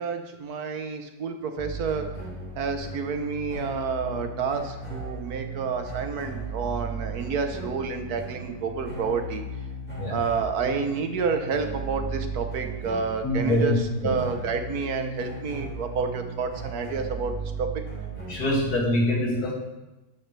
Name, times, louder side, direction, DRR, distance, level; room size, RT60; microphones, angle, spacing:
voice 1, 0.0-2.1 2.6-9.4 10.1-17.3 17.6-17.7, right 5 dB, 75° right, 6 dB, 1.5 m, -29 dB
sound 1, 1.6-18.8, right 3 dB, 5° left, 3.3 m, -36 dB
voice 2, 13.2-13.8 14.0-14.2 18.3-19.5, left 1 dB, 80° left, -3 dB, 2.9 m, -24 dB
12.0 x 10.0 x 3.3 m, 1.0 s
omnidirectional pair, 1.6 m